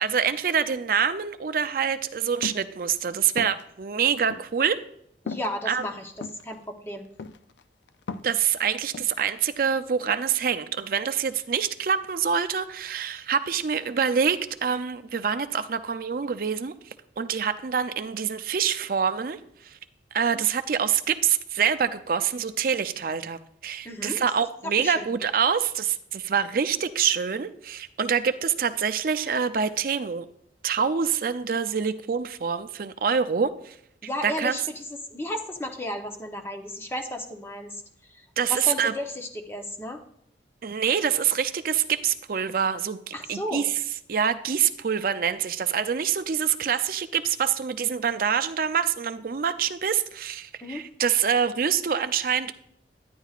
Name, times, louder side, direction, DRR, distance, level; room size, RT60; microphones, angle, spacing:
voice 1, 0.0-4.8 5.7-5.8 8.2-16.7 17.2-19.4 19.6-19.8 20.1-30.3 30.6-33.7 34.2-34.6 38.4-38.9 40.6-43.8 44.1-52.5, right 7 dB, 55° right, 11 dB, 0.4 m, -26 dB
sound 1, 2.4-2.7 3.4-3.6 4.3-4.5 5.3-5.5 6.2-6.4 7.2-7.6 7.9-8.4 8.9-9.2, left 4 dB, 90° left, 0.5 m, -35 dB
voice 2, 5.2-7.1 20.4-20.5 23.8-24.2 24.6-25.1 34.0-34.8 35.1-37.8 38.1-40.0 43.1-43.6 50.6-50.9, left 1 dB, 15° left, 4 dB, 0.8 m, -34 dB
10.5 x 10.0 x 2.4 m, 0.70 s
head